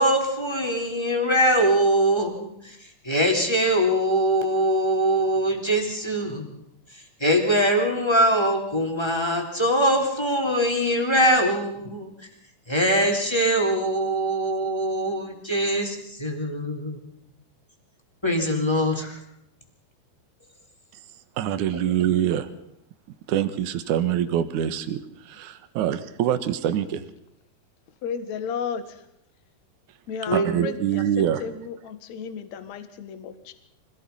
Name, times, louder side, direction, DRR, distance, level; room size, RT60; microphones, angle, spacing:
voice 1, 0.0-2.8 3.0-6.6 6.9-12.1 12.7-17.0 18.2-19.2 30.3-30.7, equal, 5° left, 2 dB, 3.1 m, -22 dB
voice 2, 20.9-22.5 23.3-27.1 29.9-30.0 30.3-31.5, right 10 dB, 60° right, 11 dB, 2.3 m, -25 dB
voice 3, 28.0-28.8 30.1-30.7 31.4-31.5 31.8-33.5, left 7 dB, 55° left, 10 dB, 2.4 m, -32 dB
25.5 x 19.5 x 5.7 m, 0.77 s
omnidirectional pair, 4.9 m